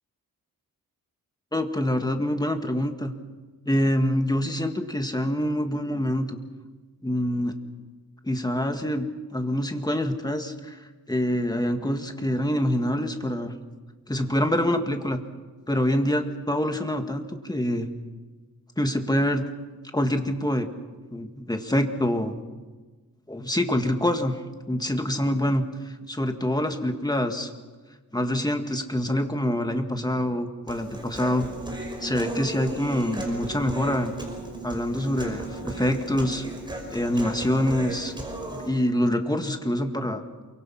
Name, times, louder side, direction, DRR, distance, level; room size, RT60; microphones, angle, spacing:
voice 1, 1.5-3.1 3.7-6.4 7.0-7.5 8.2-10.8 11.1-13.5 14.1-15.2 15.7-17.9 18.8-19.5 19.9-20.7 21.1-22.3 23.3-24.4 24.7-25.6 26.1-27.5 28.1-31.5 32.0-34.1 34.6-36.5 36.9-38.1 38.5-40.2, left 1 dB, 10° left, 5 dB, 1.9 m, -25 dB
Human voice, 30.7-38.7, right 1 dB, 15° right, 5.6 m, -35 dB
28.0 x 24.0 x 5.8 m, 1.3 s
wide cardioid pair, 105°, 35 cm